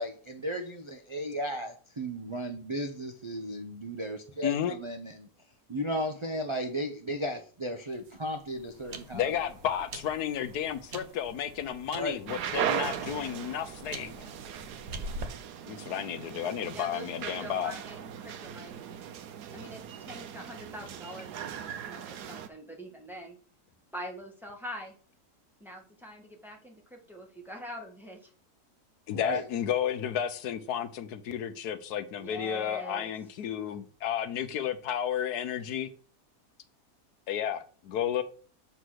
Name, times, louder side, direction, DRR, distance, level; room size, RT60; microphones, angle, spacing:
voice 1, 0.0-5.3 5.7-9.4 11.9-12.2 29.1-29.4, equal, 35° right, 0.5 m, -35 dB
voice 2, 4.4-4.7 9.1-14.3 15.7-17.7 29.1-35.9 37.3-38.2, left 9 dB, 80° left, 1.3 m, -32 dB
sound 1, 7.9-15.3, right 2 dB, 50° right, 1.1 m, -44 dB
sound 2, 12.3-22.5, right 9 dB, 85° right, 1.3 m, -38 dB
voice 3, 16.7-19.0 19.5-23.4 23.9-24.9 25.6-28.3 32.2-33.1, equal, ahead, 1.6 m, -44 dB
7.6 x 4.0 x 6.3 m
omnidirectional pair, 1.7 m